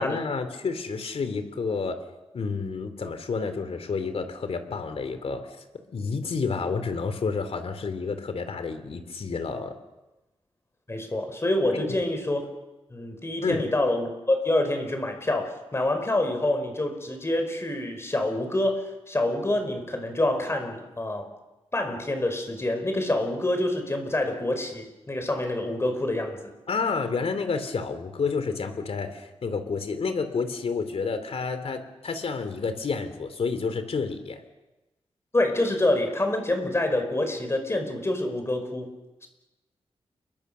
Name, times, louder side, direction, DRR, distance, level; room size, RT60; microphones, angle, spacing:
voice 1, 0.0-2.0 2.3-5.5 5.9-9.7 11.7-11.9 13.4-13.6 26.7-34.4, left 4 dB, 65° left, 9 dB, 2.9 m, -30 dB
voice 2, 10.9-12.4 12.9-21.3 21.7-26.5 35.3-39.0, left 1 dB, 25° left, 6 dB, 4.9 m, -27 dB
29.0 x 23.5 x 6.8 m, 1.0 s
wide cardioid pair, 140°, 11 cm